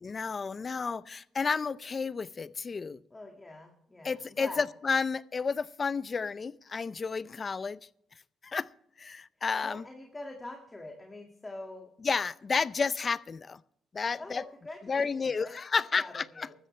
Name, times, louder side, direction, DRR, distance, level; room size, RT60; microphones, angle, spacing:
voice 1, 0.0-3.0 4.0-7.8 8.4-8.7 9.0-9.8 12.0-13.6 13.9-14.4 14.8-16.5, left 5 dB, 35° left, 0.5 m, -31 dB
voice 2, 3.1-4.6 9.6-11.9 14.2-15.5 16.0-16.5, left 2 dB, 20° left, 2.0 m, -44 dB
15.0 x 13.5 x 3.3 m
cardioid pair, 90°, 0 cm